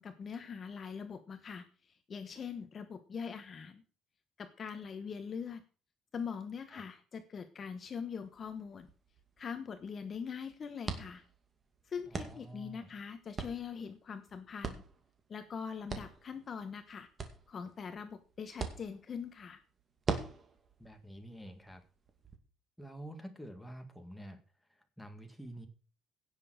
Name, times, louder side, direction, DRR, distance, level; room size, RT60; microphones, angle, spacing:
voice 1, 0.0-3.8 4.4-5.6 6.1-8.9 9.4-11.2 11.8-14.8 15.3-17.1 17.5-19.6, left 6 dB, 30° left, 8 dB, 1.2 m, -42 dB
sound 1, 8.2-22.4, right 4 dB, 25° right, 2.3 m, -44 dB
voice 2, 12.1-13.0 20.8-21.8 22.8-25.7, right 1 dB, ahead, 5 dB, 2.0 m, -49 dB
17.0 x 7.0 x 6.4 m, 0.37 s
cardioid pair, 155°, 0 cm